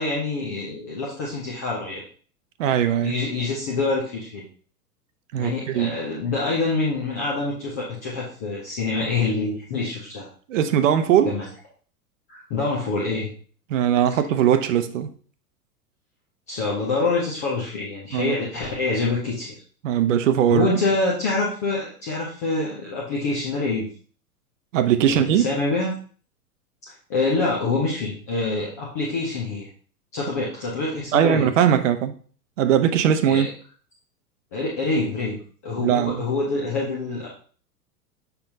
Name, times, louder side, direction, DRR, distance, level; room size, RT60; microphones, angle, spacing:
voice 1, 0.0-2.0 3.0-4.4 5.4-10.3 11.2-11.5 12.3-13.3 16.5-19.5 20.5-23.9 25.0-25.9 26.9-29.7 30.1-31.5 33.3-33.5 34.5-35.4 35.6-37.3, left 3 dB, 10° left, -4 dB, 0.3 m, -26 dB
voice 2, 2.6-3.1 5.3-6.0 10.5-11.4 13.7-15.1 18.1-18.3 19.8-20.7 24.7-25.5 31.1-32.1 32.6-33.5 35.8-36.2, right 9 dB, 50° right, 10 dB, 0.8 m, -20 dB
6.8 x 5.5 x 2.7 m, 0.43 s
figure-of-eight pair, 100°, 48 cm